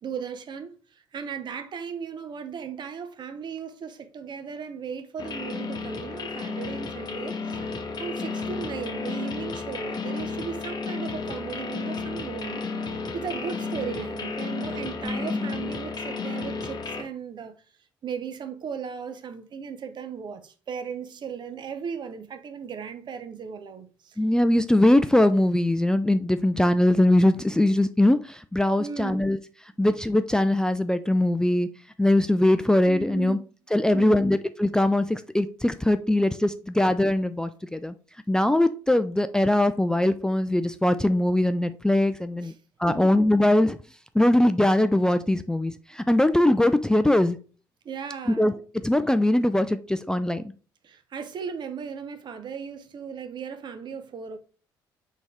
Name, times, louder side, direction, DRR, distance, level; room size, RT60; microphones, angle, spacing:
voice 1, 0.0-12.6 13.1-17.5 18.0-24.2 28.8-29.3 32.8-33.5 33.9-34.3 42.4-42.5 42.9-43.2 47.8-48.6 50.8-54.4, right 6 dB, 45° right, 0.7 m, -36 dB
sound 1, 5.2-17.0, left 4 dB, 40° left, 0.9 m, -33 dB
voice 2, 15.0-15.5 24.2-29.4 29.8-31.7 32.0-33.4 33.7-37.9 38.3-42.5 42.8-43.8 44.1-47.4 48.4-48.5 48.8-50.4, left 1 dB, 5° left, 0.3 m, -21 dB
4.0 x 3.6 x 3.5 m
hypercardioid pair, 50°, 10 cm